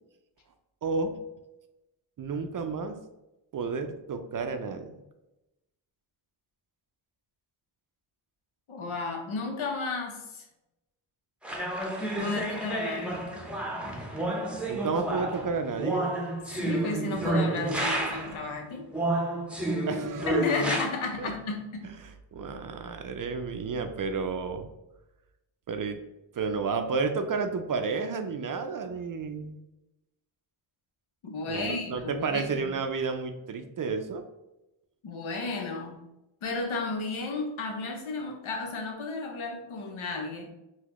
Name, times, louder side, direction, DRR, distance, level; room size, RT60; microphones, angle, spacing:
voice 1, 0.8-1.2 2.2-3.0 3.5-4.9 14.7-16.1 19.9-20.3 21.2-21.3 22.0-24.7 25.7-26.0 26.3-29.6 31.5-34.2, right 4 dB, 45° right, 7 dB, 0.4 m, -31 dB
voice 2, 8.7-10.4 12.2-13.3 16.6-18.9 20.3-21.9 31.2-32.7 35.0-36.0 36.4-40.5, left 3 dB, 75° left, 3 dB, 0.8 m, -33 dB
sound 1, 11.4-18.4 18.9-20.8, right 2 dB, ahead, 0.7 m, -30 dB
3.9 x 2.2 x 3.0 m, 0.95 s
cardioid pair, 55°, 48 cm